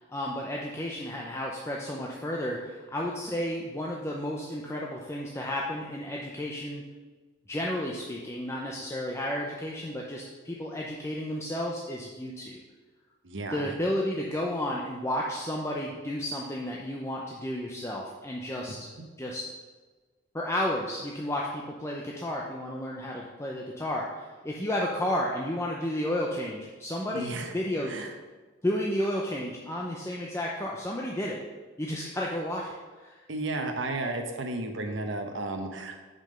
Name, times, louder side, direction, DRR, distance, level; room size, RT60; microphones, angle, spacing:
voice 1, 0.1-6.8 7.5-12.6 13.5-18.9 19.2-19.5 20.3-28.0 28.6-31.4 31.8-33.2, left 1 dB, 15° left, -2 dB, 0.6 m, -32 dB
voice 2, 13.2-13.7 27.1-27.5 27.9-28.1 33.3-36.0, right 2 dB, 65° right, 4 dB, 1.0 m, -33 dB
5.7 x 5.3 x 6.5 m, 1.3 s
head